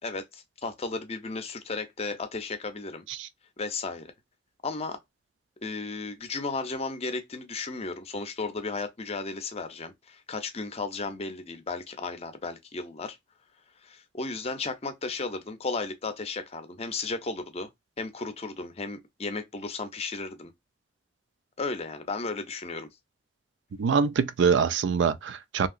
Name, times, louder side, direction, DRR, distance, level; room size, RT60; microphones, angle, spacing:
voice 1, 0.0-3.0 3.6-4.1 4.6-5.0 5.6-13.2 13.8-17.7 18.0-20.5 21.6-22.9, left 3 dB, 35° left, 0.5 m, -34 dB
voice 2, 23.8-25.7, right 6 dB, 70° right, 0.4 m, -24 dB
2.8 x 2.7 x 2.5 m
head